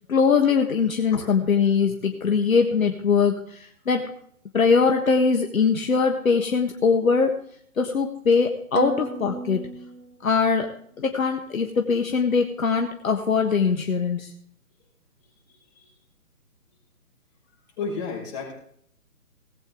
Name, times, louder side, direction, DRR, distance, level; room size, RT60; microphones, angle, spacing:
voice 1, 0.1-4.0 4.5-7.3 7.8-9.7 10.2-10.7 11.0-14.3, left 5 dB, 65° left, 4 dB, 1.6 m, -22 dB
sound 1, 8.8-10.7, right 3 dB, 75° right, 1.2 m, -33 dB
voice 2, 17.8-18.5, left 4 dB, 25° left, -2 dB, 5.9 m, -32 dB
19.0 x 8.6 x 3.7 m, 0.66 s
figure-of-eight pair, 150°, 44 cm